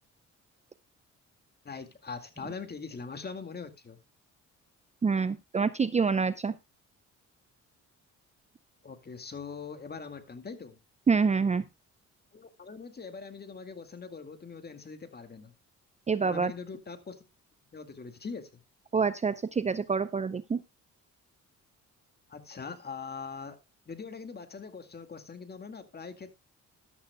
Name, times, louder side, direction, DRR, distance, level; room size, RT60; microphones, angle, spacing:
voice 1, 1.6-4.0 8.8-10.8 12.3-15.5 16.2-17.3 17.7-18.6 22.3-23.6 23.9-26.4, left 5 dB, 35° left, 2.1 m, -42 dB
voice 2, 5.0-6.5 11.1-11.6 16.1-16.5 18.9-20.6, right 5 dB, 25° right, 0.5 m, -26 dB
13.5 x 11.5 x 2.3 m
cardioid pair, 90°, 30 cm